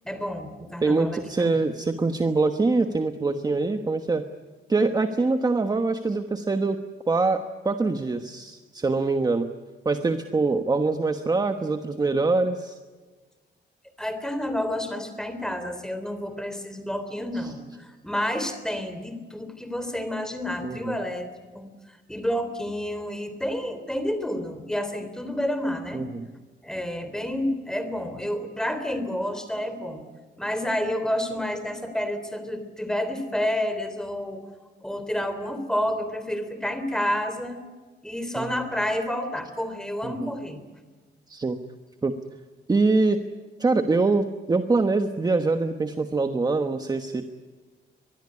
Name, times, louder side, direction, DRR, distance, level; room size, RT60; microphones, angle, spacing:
voice 1, 0.0-1.5 14.0-26.1 26.6-30.1 30.4-34.4 34.8-37.6 38.0-40.6, left 1 dB, 5° left, 9 dB, 3.4 m, -30 dB
voice 2, 0.8-4.2 4.7-6.8 7.1-9.5 9.8-12.8 17.3-17.5 20.6-20.9 25.9-26.3 38.4-38.5 40.0-40.3 41.3-41.6 42.0-42.1 42.7-43.2 43.6-47.2, right 3 dB, 20° right, 7 dB, 1.2 m, -24 dB
24.0 x 21.0 x 9.8 m, 1.4 s
wide cardioid pair, 175°, 19 cm